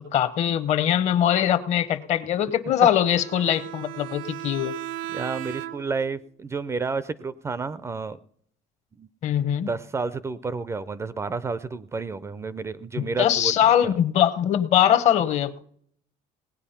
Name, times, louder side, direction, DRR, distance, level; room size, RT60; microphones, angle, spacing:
voice 1, 0.0-4.8 9.2-9.7 13.0-15.6, left 10 dB, 50° left, 15 dB, 0.9 m, -22 dB
Bowed string instrument, 3.1-6.1, right 13 dB, 70° right, 0.6 m, -36 dB
voice 2, 5.1-8.2 9.0-9.1 9.7-13.5 13.8-13.9, right 4 dB, 20° right, 16 dB, 0.4 m, -30 dB
18.5 x 8.4 x 5.7 m, 0.64 s
cardioid pair, 140°, 15 cm